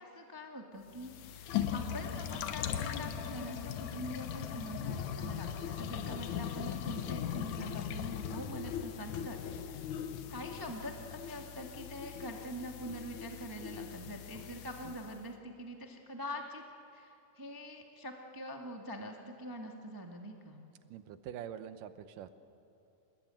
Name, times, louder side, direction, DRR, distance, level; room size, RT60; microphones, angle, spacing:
voice 1, 0.0-9.8 10.3-16.6 16.9-20.6, equal, 15° right, 2 dB, 0.7 m, -44 dB
sound 1, 0.9-15.2, left 9 dB, 70° left, 2.3 m, -39 dB
voice 2, 20.9-22.3, right 9 dB, 80° right, 11 dB, 2.5 m, -44 dB
28.0 x 19.5 x 9.0 m, 2.8 s
omnidirectional pair, 3.7 m